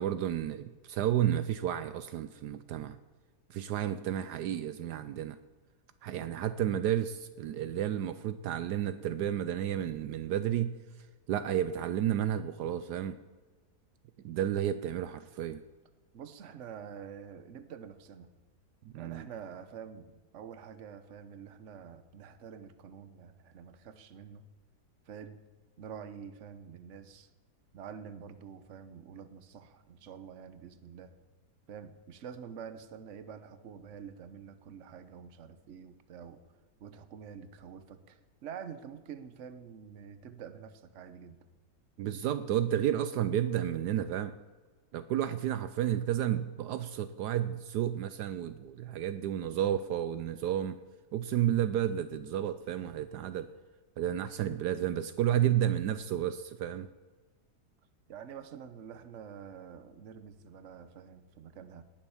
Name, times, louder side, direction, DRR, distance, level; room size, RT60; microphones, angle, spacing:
voice 1, 0.0-3.0 3.5-5.4 6.0-10.7 11.3-13.2 14.2-15.6 18.8-19.3 42.0-44.3 44.9-50.8 51.1-53.5 54.0-56.9, right 11 dB, 75° right, 12 dB, 1.2 m, -31 dB
voice 2, 16.1-18.3 18.9-24.5 25.0-25.4 25.8-27.3 27.7-31.1 31.7-36.4 36.8-41.4 58.1-61.8, right 7 dB, 50° right, 12 dB, 1.2 m, -47 dB
19.0 x 7.6 x 7.1 m, 1.4 s
omnidirectional pair, 1.8 m